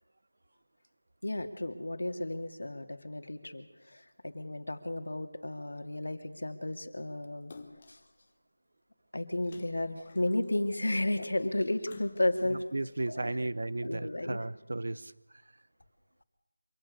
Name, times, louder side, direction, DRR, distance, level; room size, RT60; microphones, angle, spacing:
voice 1, 1.2-3.6 3.9-7.5 9.1-12.6 13.2-13.3 13.8-14.4, left 1 dB, 85° left, 7 dB, 2.7 m, -33 dB
Splash splatter, 7.5-8.1 9.4-10.7 11.8-12.6 13.2-13.3, left 4 dB, 20° left, 1.2 m, -51 dB
voice 2, 12.5-15.1, right 2 dB, 45° right, 18 dB, 0.9 m, -34 dB
26.0 x 18.0 x 6.8 m, 0.95 s
figure-of-eight pair, 180°, 0 cm